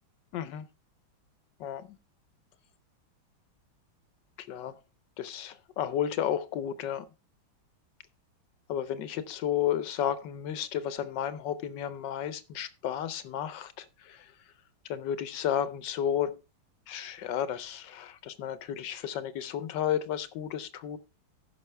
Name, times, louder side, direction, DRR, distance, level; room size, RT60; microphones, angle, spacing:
voice 1, 0.3-0.7 1.6-1.9 4.4-4.7 5.2-7.0 8.7-14.3 14.9-16.4 16.9-21.0, left 9 dB, 70° left, 1.3 m, -32 dB
15.0 x 6.0 x 3.3 m
omnidirectional pair, 2.3 m